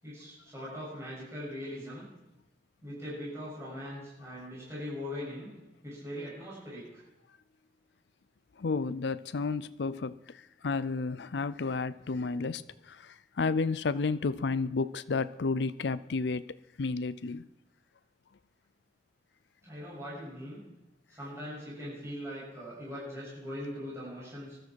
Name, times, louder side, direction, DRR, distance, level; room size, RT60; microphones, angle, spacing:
voice 1, 0.0-2.1 2.8-5.5 5.8-7.0 19.6-20.6 21.2-24.6, equal, 15° right, -8 dB, 7.3 m, -41 dB
voice 2, 8.6-17.5, left 4 dB, 70° left, 16 dB, 0.5 m, -32 dB
20.5 x 13.0 x 4.6 m, 0.98 s
head